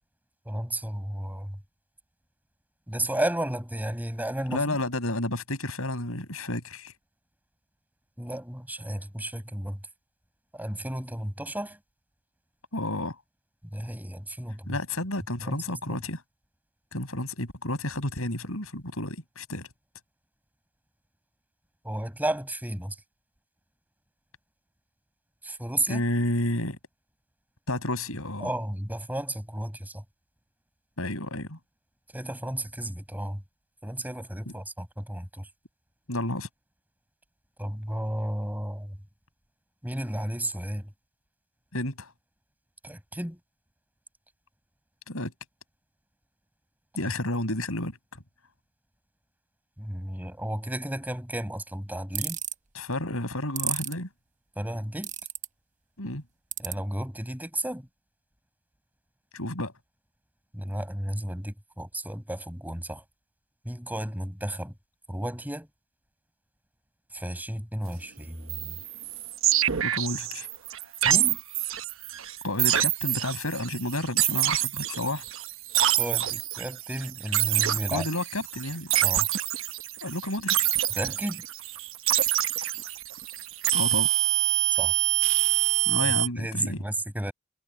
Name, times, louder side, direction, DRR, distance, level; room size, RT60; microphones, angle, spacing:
voice 1, 0.5-1.6 2.9-4.8 8.2-9.8 10.5-11.8 13.7-14.8 15.4-15.6 15.9-16.0 21.8-23.0 25.4-26.0 28.4-30.0 32.1-33.4 33.8-35.5 37.6-39.0 39.8-40.9 42.8-43.4 49.8-52.4 54.6-55.1 56.6-57.9 60.5-63.0 63.6-64.7 65.1-65.7 67.1-68.8 71.0-71.4 75.9-78.0 79.0-79.3 80.9-81.4 84.7-84.9 86.4-87.3, right 1 dB, 10° right, 5.8 m, -33 dB
voice 2, 4.5-6.9 12.7-13.2 14.7-16.2 16.9-19.7 25.9-26.8 27.7-28.5 31.0-31.6 36.1-36.5 41.7-42.1 45.1-45.3 46.9-48.2 52.7-54.1 56.0-56.2 59.3-59.7 69.8-70.5 72.4-75.2 77.9-78.9 80.0-80.7 83.7-84.1 85.9-86.8, left 1 dB, 70° left, 7.3 m, -31 dB
sound 1, 52.1-52.5 53.6-53.9 55.0-55.5 56.5-56.7, right 10 dB, 35° right, 1.2 m, -30 dB
sound 2, 68.5-86.3, right 13 dB, 65° right, 1.2 m, -26 dB
head